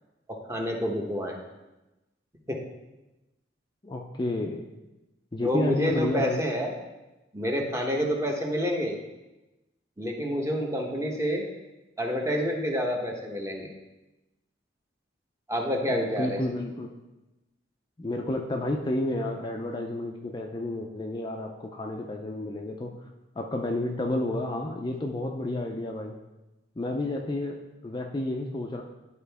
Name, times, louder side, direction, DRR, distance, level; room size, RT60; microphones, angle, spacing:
voice 1, 0.3-1.4 2.5-2.6 5.4-6.7 7.3-9.0 10.0-11.5 12.0-13.7 15.5-16.4, equal, 15° right, 0 dB, 1.0 m, -28 dB
voice 2, 3.8-4.6 5.3-6.4 15.9-16.9 18.0-22.9 23.4-26.2 26.8-27.6 27.8-28.8, left 1 dB, 25° left, 1 dB, 0.5 m, -31 dB
11.0 x 4.5 x 3.4 m, 1.0 s
head